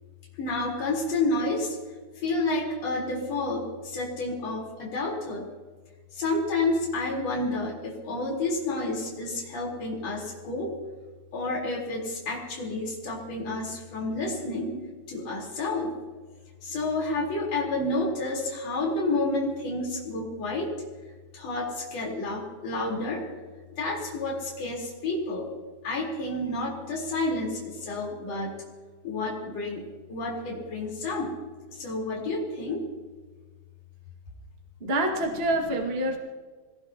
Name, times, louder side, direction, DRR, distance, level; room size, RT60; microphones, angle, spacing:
voice 1, 0.4-1.7 2.2-5.4 6.2-10.7 11.3-14.7 15.1-15.9 16.6-20.7 21.3-23.2 23.8-25.5 25.8-28.5 29.0-29.8 30.1-31.3 31.8-32.8, left 2 dB, 40° left, -2 dB, 4.9 m, -30 dB
voice 2, 34.8-36.2, right 1 dB, 90° right, 1 dB, 0.5 m, -26 dB
25.5 x 19.0 x 2.9 m, 1.4 s
omnidirectional pair, 4.9 m